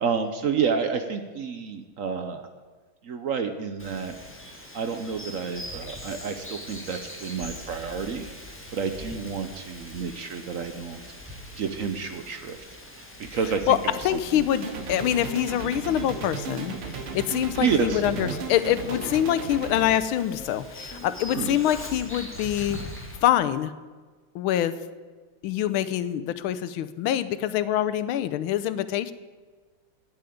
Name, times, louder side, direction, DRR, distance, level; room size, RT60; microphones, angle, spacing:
voice 1, 0.0-2.5 3.0-4.1 4.7-8.3 8.7-11.0 11.6-12.6 13.2-14.5 17.6-18.4 21.4-21.6, right 6 dB, 70° right, 8 dB, 0.7 m, -29 dB
Bird vocalization bird call bird song, 3.8-23.2, left 1 dB, 5° left, 1.3 m, -42 dB
voice 2, 14.0-22.8 23.2-23.7 24.3-24.7 25.4-29.1, left 11 dB, 80° left, 14 dB, 1.5 m, -25 dB
sound 1, 14.5-19.9, right 5 dB, 85° right, 2.1 m, -35 dB
9.3 x 8.5 x 9.2 m, 1.4 s
omnidirectional pair, 2.3 m